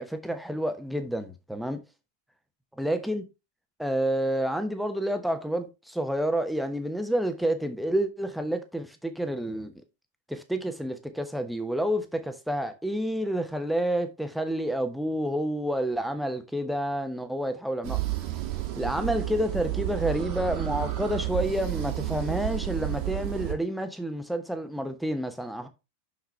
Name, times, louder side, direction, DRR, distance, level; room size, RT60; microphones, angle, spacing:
voice 1, 0.0-1.8 2.8-3.2 3.8-9.7 10.3-18.0 18.8-25.7, equal, ahead, 1.0 m, -29 dB
sound 1, 17.8-23.5, right 16 dB, 45° right, 1.3 m, -31 dB
6.2 x 5.7 x 3.3 m
figure-of-eight pair, 90°, 0 cm